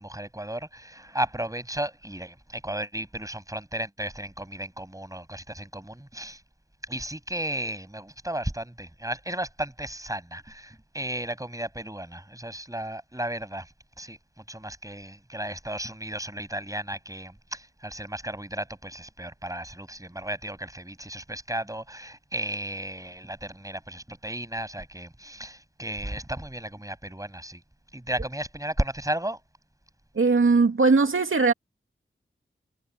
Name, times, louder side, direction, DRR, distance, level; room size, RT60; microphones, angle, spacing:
voice 1, 0.0-6.4 6.9-13.7 14.0-14.2 14.5-27.6 27.9-29.4, right 1 dB, 15° right, 6.9 m, -34 dB
voice 2, 30.1-31.5, right 4 dB, 80° right, 2.5 m, -20 dB
cardioid pair, 45°, 21 cm